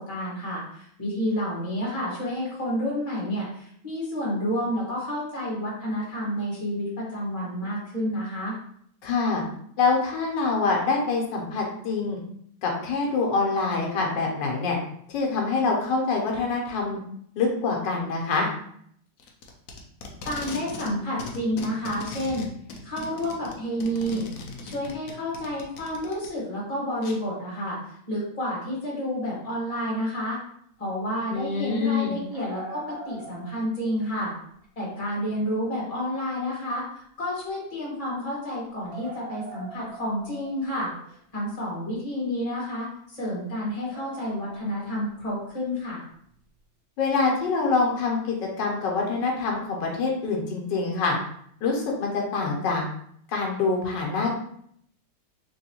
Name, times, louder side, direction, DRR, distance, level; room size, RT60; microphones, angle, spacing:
voice 1, 0.0-8.6 20.2-22.4 22.8-24.3 24.6-27.8 28.1-30.4 30.8-34.3 34.7-40.9 41.3-46.0, equal, 20° left, -6 dB, 1.4 m, -30 dB
voice 2, 9.0-9.4 9.8-12.2 12.6-14.8 15.1-17.0 17.3-18.5 31.3-32.2 47.0-51.2 51.6-52.8 53.3-54.3, left 4 dB, 85° left, 0 dB, 1.4 m, -25 dB
Packing tape duct tape, 19.2-20.9 21.2-26.3 27.0-27.2, left 3 dB, 70° left, 1.0 m, -38 dB
sound 1, 32.1-33.9 34.3-34.4 35.5-35.6 36.1-36.2 36.5-36.6 38.9-41.1 43.9-44.9 46.3-46.4, right 3 dB, 70° right, 0.5 m, -43 dB
3.5 x 3.0 x 2.8 m, 0.67 s
omnidirectional pair, 1.9 m